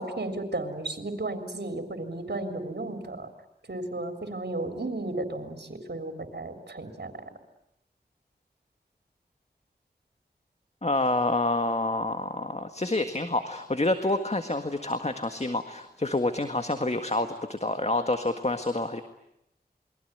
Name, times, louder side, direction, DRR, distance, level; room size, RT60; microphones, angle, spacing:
voice 1, 0.0-3.3 3.7-7.1, right 2 dB, 75° right, 5 dB, 3.7 m, -34 dB
voice 2, 10.8-19.0, left 2 dB, 40° left, 8 dB, 1.7 m, -28 dB
28.5 x 23.0 x 9.2 m, 0.79 s
wide cardioid pair, 50°, 17 cm